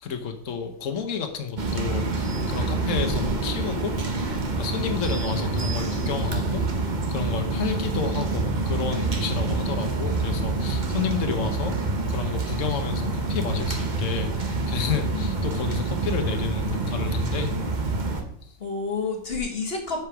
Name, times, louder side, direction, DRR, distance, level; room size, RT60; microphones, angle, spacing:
voice 1, 0.0-4.0 4.6-6.6 7.1-11.8 12.1-17.5 18.4-18.5, left 7 dB, 70° left, 6 dB, 1.4 m, -31 dB
sound 1, 1.6-18.2, right 3 dB, 40° right, 1.1 m, -27 dB
voice 2, 7.5-8.1 15.1-15.3 18.6-20.0, left 4 dB, 50° left, 1 dB, 1.6 m, -30 dB
8.0 x 4.9 x 6.0 m, 0.65 s
omnidirectional pair, 1.4 m